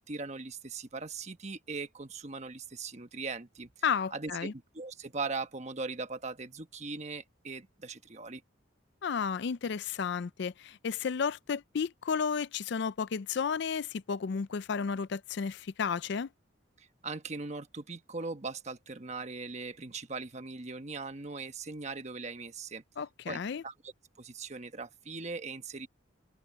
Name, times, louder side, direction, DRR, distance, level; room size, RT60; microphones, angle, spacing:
voice 1, 0.0-3.7 4.1-8.4 16.8-22.8 23.3-23.9 24.2-25.9, right 4 dB, 35° right, 1.2 m, -40 dB
voice 2, 3.8-4.5 9.0-16.3 23.0-23.6, left 6 dB, 60° left, 0.4 m, -32 dB
head